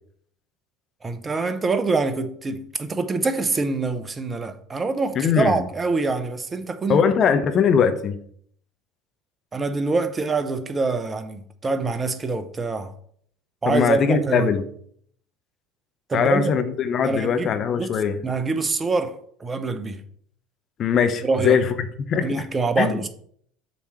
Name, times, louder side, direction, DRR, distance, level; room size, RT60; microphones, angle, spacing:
voice 1, 1.0-7.0 9.5-12.9 13.6-14.5 16.1-16.5 17.0-17.9 18.2-20.0 21.2-21.6 22.2-23.1, right 3 dB, 25° right, 0.8 m, -25 dB
voice 2, 5.2-5.6 6.9-8.2 13.7-14.6 16.1-18.2 20.8-21.7 22.1-22.3 22.8-23.0, left 7 dB, 45° left, 0.7 m, -21 dB
6.8 x 3.2 x 5.7 m
hypercardioid pair, 70°, 0 cm